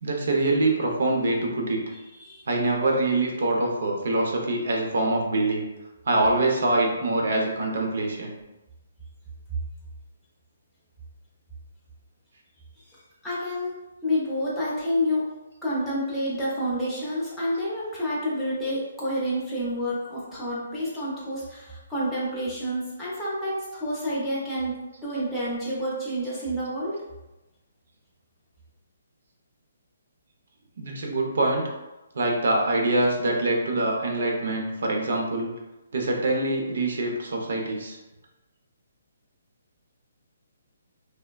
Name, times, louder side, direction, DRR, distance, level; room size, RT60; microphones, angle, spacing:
voice 1, 0.0-1.8 2.5-5.6 6.1-8.4 30.8-31.7 32.1-35.5 35.9-38.0, right 2 dB, 55° right, 0 dB, 0.6 m, -24 dB
voice 2, 13.2-13.7 14.0-15.2 15.6-27.0, equal, ahead, -12 dB, 0.5 m, -29 dB
3.2 x 2.1 x 2.2 m, 1.0 s
hypercardioid pair, 175°, 0 cm